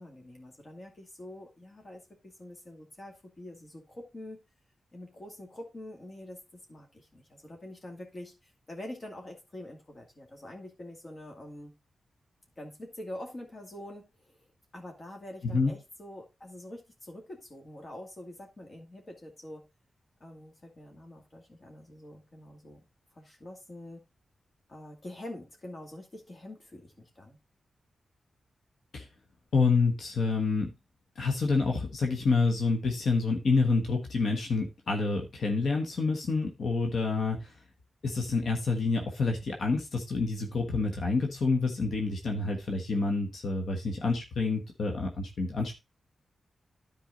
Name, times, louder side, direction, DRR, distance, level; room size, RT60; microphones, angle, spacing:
voice 1, 0.0-4.4 4.9-11.7 12.6-14.4 14.7-19.7 20.2-22.8 23.1-24.0 24.7-27.4, left 1 dB, 40° left, 2 dB, 2.2 m, -45 dB
voice 2, 29.5-30.7 31.2-37.5 38.0-45.8, left 4 dB, 75° left, 2 dB, 1.3 m, -28 dB
10.5 x 4.7 x 3.8 m, 0.26 s
cardioid pair, 65°, 0 cm